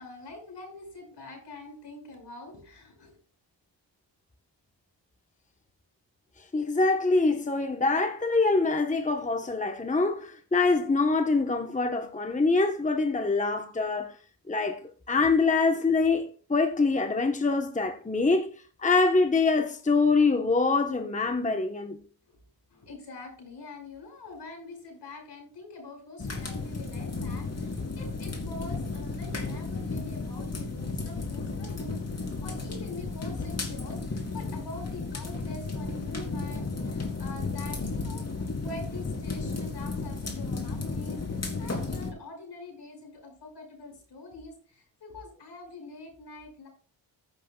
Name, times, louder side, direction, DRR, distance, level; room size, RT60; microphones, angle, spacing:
voice 1, 0.0-3.2 22.3-22.4 22.7-46.7, left 2 dB, 60° left, 5.8 m, -45 dB
voice 2, 6.5-14.1 14.5-14.8 15.1-18.5 18.8-22.0, left 3 dB, 15° left, 1.1 m, -24 dB
sound 1, 26.2-42.1, left 3 dB, 35° left, 3.1 m, -34 dB
15.5 x 8.2 x 2.3 m
cardioid pair, 70°, 45 cm